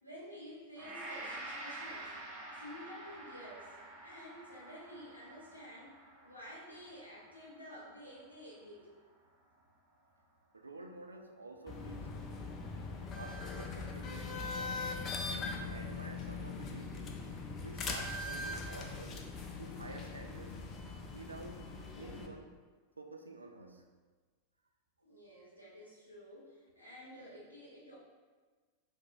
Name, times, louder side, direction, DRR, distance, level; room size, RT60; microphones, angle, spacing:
voice 1, 0.0-2.1 2.6-5.9 6.2-8.9 25.0-28.0, equal, 90° left, -6 dB, 0.7 m, -51 dB
Gong, 0.8-9.1 9.5-9.7, right 2 dB, 35° right, 1.3 m, -49 dB
voice 2, 10.5-12.1 13.1-14.9 15.2-17.2 17.6-19.2 19.6-20.6 21.1-21.6 22.0-22.6 23.0-23.9, right 2 dB, 80° right, 4 dB, 0.3 m, -50 dB
sound 1, 11.7-22.3, left 3 dB, 30° left, 0.4 m, -41 dB
4.3 x 2.9 x 2.4 m, 1.4 s
figure-of-eight pair, 90°, 0 cm